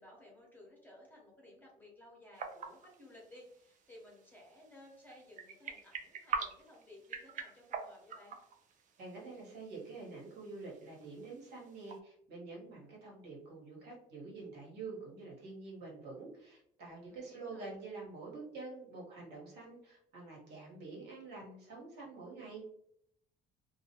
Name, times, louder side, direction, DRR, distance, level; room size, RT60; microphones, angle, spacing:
voice 1, 0.0-8.4 17.1-17.8, left 1 dB, 10° left, -3 dB, 0.9 m, -57 dB
sound 1, 2.3-12.0, right 5 dB, 50° right, 0.4 m, -46 dB
voice 2, 9.0-22.7, right 3 dB, 80° right, -3 dB, 1.2 m, -47 dB
2.3 x 2.1 x 2.8 m, 0.69 s
cardioid pair, 110°, 17 cm